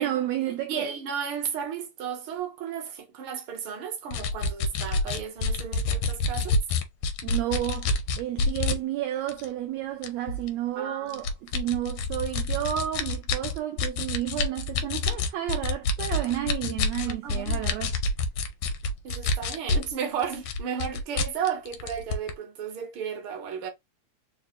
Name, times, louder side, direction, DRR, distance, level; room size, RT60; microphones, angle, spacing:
voice 1, 0.0-0.9 7.2-17.9, right 12 dB, 80° right, 1.6 m, -31 dB
voice 2, 0.7-6.6 10.8-11.2 17.2-17.7 19.0-23.7, right 7 dB, 60° right, 1.5 m, -34 dB
sound 1, 4.1-8.8 9.3-9.5 10.0-10.5 11.1-19.9 20.2-22.3, left 3 dB, 80° left, 1.4 m, -27 dB
4.9 x 2.3 x 2.8 m
omnidirectional pair, 3.5 m